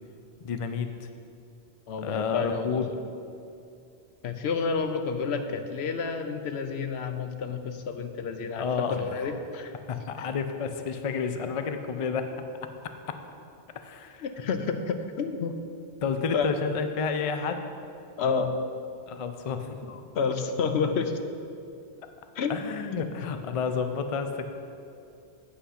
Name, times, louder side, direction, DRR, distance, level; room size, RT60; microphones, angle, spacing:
voice 1, 0.4-1.1 2.0-2.9 8.6-9.3 9.9-12.3 13.1-13.2 13.7-14.3 16.0-17.6 19.1-20.0 22.5-24.5, left 5 dB, 45° left, 7 dB, 0.4 m, -30 dB
voice 2, 1.9-2.8 4.2-9.7 10.2-10.3 14.2-15.6 16.3-16.5 18.2-18.5 20.1-21.2 22.4-22.6 23.0-23.1, left 5 dB, 75° left, 7 dB, 0.9 m, -29 dB
8.2 x 5.8 x 5.6 m, 2.5 s
omnidirectional pair, 1.1 m